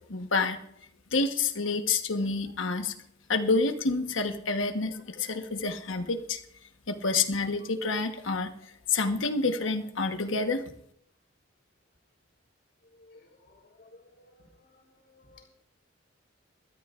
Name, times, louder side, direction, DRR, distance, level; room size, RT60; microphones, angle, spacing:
voice 1, 0.1-0.6 1.1-2.9 3.3-6.4 6.9-8.5 8.9-10.6, left 3 dB, 80° left, 7 dB, 1.2 m, -28 dB
voice 2, 13.0-15.5, left 2 dB, 55° left, 0 dB, 3.5 m, -57 dB
23.5 x 13.0 x 2.5 m, 0.72 s
head